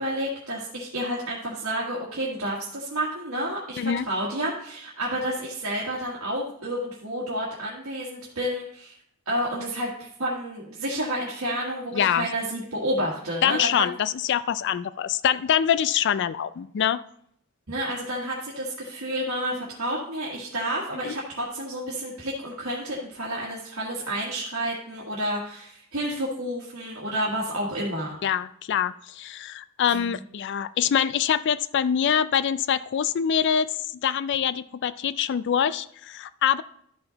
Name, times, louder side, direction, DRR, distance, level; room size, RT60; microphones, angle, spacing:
voice 1, 0.0-8.9 9.3-13.8 17.7-28.2 29.9-30.2, right 1 dB, 70° right, -5 dB, 1.7 m, -30 dB
voice 2, 11.9-12.3 13.4-17.0 21.0-21.2 28.2-36.6, left 8 dB, 55° left, 16 dB, 0.3 m, -24 dB
12.5 x 5.7 x 3.9 m, 0.68 s
head